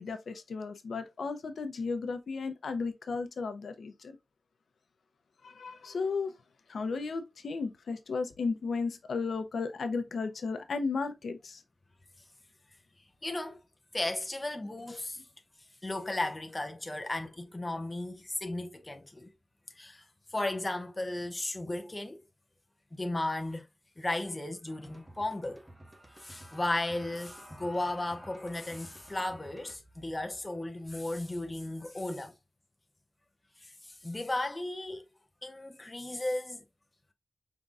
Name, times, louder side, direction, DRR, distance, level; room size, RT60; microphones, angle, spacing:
voice 1, 0.0-4.2 5.4-6.4 6.7-11.6, left 4 dB, 85° left, 0.7 m, -34 dB
voice 2, 13.2-13.6 13.9-15.2 15.8-19.3 19.8-20.1 20.3-22.2 22.9-23.7 24.0-25.7 26.2-32.3 33.6-35.0 35.4-36.6, left 2 dB, 20° left, 0.6 m, -35 dB
sound 1, 24.7-29.8, right 1 dB, 10° right, 0.9 m, -52 dB
5.4 x 3.6 x 2.4 m
wide cardioid pair, 140°, 0 cm